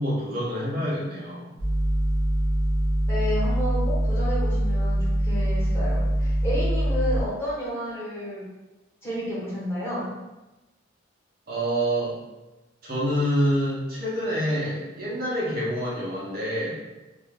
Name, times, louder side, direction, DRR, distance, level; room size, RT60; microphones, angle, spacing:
voice 1, 0.0-1.5 11.5-12.1 12.8-16.8, equal, 50° right, -7 dB, 0.8 m, -27 dB
sound 1, 1.6-7.2, equal, 60° left, 0.9 m, -23 dB
voice 2, 3.1-8.4 9.0-10.1, equal, 10° left, -9 dB, 1.2 m, -31 dB
2.6 x 2.3 x 3.3 m, 1.0 s
head